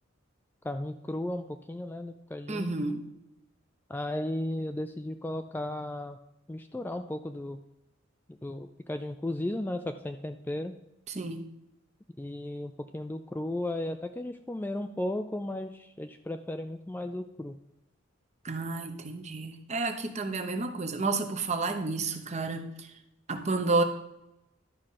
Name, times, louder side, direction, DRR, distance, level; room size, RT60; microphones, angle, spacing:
voice 1, 0.6-2.7 3.9-6.2 6.5-7.6 8.3-10.7 12.2-17.6, left 1 dB, 10° left, 7 dB, 0.3 m, -35 dB
voice 2, 2.5-3.0 11.1-11.4 18.4-22.9 23.3-23.8, right 3 dB, 35° right, 6 dB, 0.9 m, -30 dB
12.0 x 5.0 x 5.7 m, 0.88 s
head